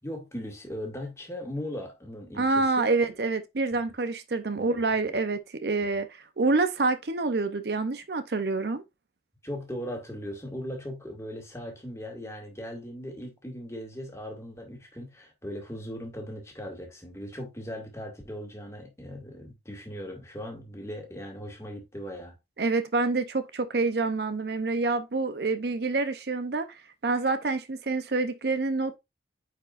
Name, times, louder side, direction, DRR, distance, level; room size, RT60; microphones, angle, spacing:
voice 1, 0.0-2.9 4.6-5.2 9.4-22.4, equal, 15° left, 1.9 m, -38 dB
voice 2, 2.3-6.1 6.4-8.8 22.6-26.7 27.0-29.0, right 3 dB, 60° right, 0.7 m, -27 dB
9.3 x 4.7 x 2.5 m
head